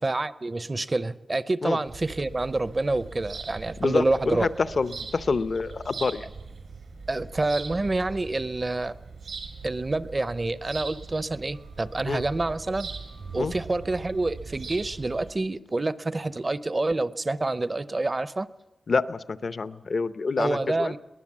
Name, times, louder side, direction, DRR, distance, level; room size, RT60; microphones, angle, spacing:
voice 1, 0.0-4.5 7.1-9.0 9.6-12.9 13.3-18.5 20.4-21.0, right 2 dB, 30° right, 15 dB, 0.6 m, -27 dB
sound 1, 1.9-15.3, right 4 dB, 85° right, 4.4 m, -41 dB
voice 2, 3.8-4.5 4.8-6.3 12.1-12.2 13.4-13.5 18.9-20.9, left 4 dB, 60° left, 13 dB, 0.7 m, -27 dB
22.0 x 19.0 x 7.4 m, 1.1 s
wide cardioid pair, 125°, 0 cm